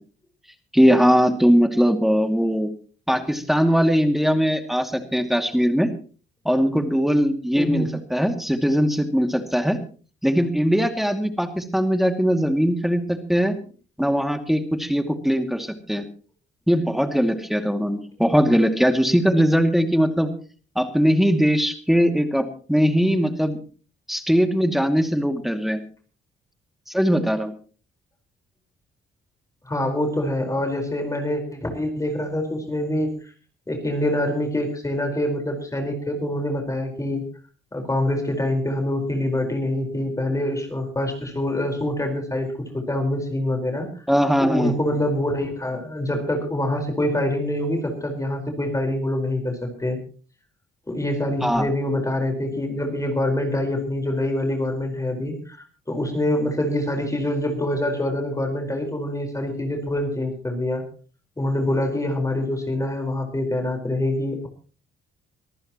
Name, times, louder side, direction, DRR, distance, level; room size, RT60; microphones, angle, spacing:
voice 1, 0.7-2.7 3.1-5.9 6.4-7.8 8.1-9.8 10.2-13.5 14.0-16.0 16.7-20.3 20.8-23.6 24.1-25.8 26.9-27.5 44.1-44.7 51.4-51.6, equal, ahead, 6 dB, 2.4 m, -20 dB
voice 2, 7.5-7.9 29.6-33.1 33.7-37.2 37.7-43.9 44.4-50.0 50.9-60.8 61.4-64.5, left 1 dB, 15° left, 4 dB, 4.5 m, -25 dB
24.0 x 14.5 x 3.0 m, 0.39 s
cardioid pair, 90°, 20 cm